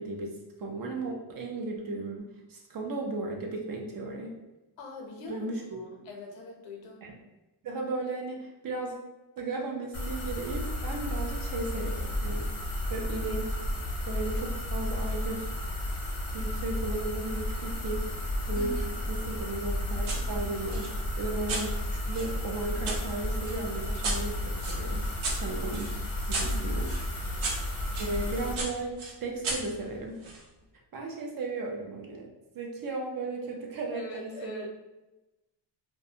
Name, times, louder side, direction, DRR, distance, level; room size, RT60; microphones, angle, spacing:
voice 1, 0.0-4.3 5.3-5.8 7.0-7.1 7.6-9.0 9.4-12.6 12.9-13.6 14.0-15.5 16.3-18.8 19.1-27.5 28.0-30.2 30.9-32.3 32.5-34.7, right 2 dB, 45° right, 0 dB, 0.5 m, -35 dB
voice 2, 4.8-7.1 18.5-19.0 26.4-26.8 33.9-34.7, left 1 dB, 65° left, 1 dB, 0.7 m, -42 dB
sound 1, 9.9-28.5, left 1 dB, 30° left, 0.5 m, -33 dB
sound 2, 20.1-20.2 20.7-23.0 23.4-28.1 28.6-30.4, right 2 dB, 80° right, 0.8 m, -36 dB
2.5 x 2.2 x 2.7 m, 1.0 s
cardioid pair, 135°, 49 cm